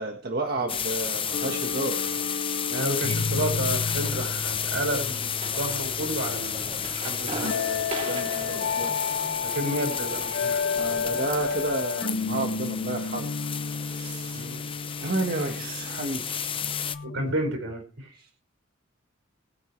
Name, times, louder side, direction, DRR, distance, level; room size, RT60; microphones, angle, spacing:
voice 1, 0.0-2.2 8.1-9.0 10.7-13.3 13.8-14.4 15.0-16.5 18.1-18.3, right 2 dB, 50° right, 3 dB, 1.6 m, -31 dB
sound 1, 0.7-17.0, left 8 dB, 25° left, 0.8 m, -32 dB
sound 2, 1.3-17.3, left 5 dB, 60° left, 0.5 m, -32 dB
voice 2, 2.7-7.9 9.4-10.6 14.3-14.6 17.0-18.2, right 1 dB, 75° right, 4 dB, 5.4 m, -31 dB
sound 3, 3.9-11.8, right 2 dB, 35° right, 3.3 m, -40 dB
21.0 x 9.4 x 3.3 m, 0.38 s
head